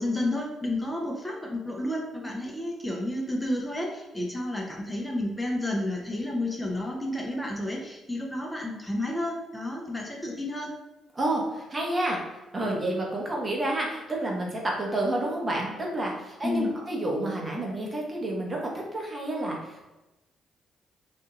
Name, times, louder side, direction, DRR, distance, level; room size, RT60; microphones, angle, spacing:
voice 1, 0.0-10.7 16.4-16.7, left 1 dB, 10° left, -2 dB, 0.7 m, -31 dB
voice 2, 11.1-19.8, right 1 dB, 35° right, -2 dB, 1.1 m, -29 dB
3.6 x 2.6 x 2.5 m, 1.0 s
hypercardioid pair, 45°, 0 cm